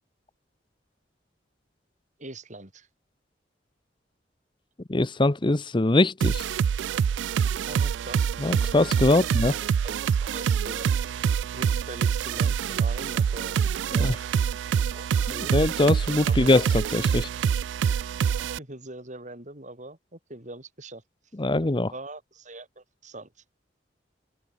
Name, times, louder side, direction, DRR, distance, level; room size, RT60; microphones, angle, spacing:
voice 1, 2.2-2.9 7.7-8.3 9.2-10.9 11.5-13.6 13.9-14.2 14.9-15.5 16.2-16.5 18.0-18.1 18.6-21.0 21.9-23.3, right 2 dB, 45° right, 5.8 m, -42 dB
voice 2, 4.9-6.4 8.4-9.5 14.0-14.1 15.5-17.3 21.4-21.9, left 2 dB, 25° left, 0.8 m, -22 dB
sound 1, 6.2-18.6, right 7 dB, 85° right, 0.3 m, -26 dB
open air
head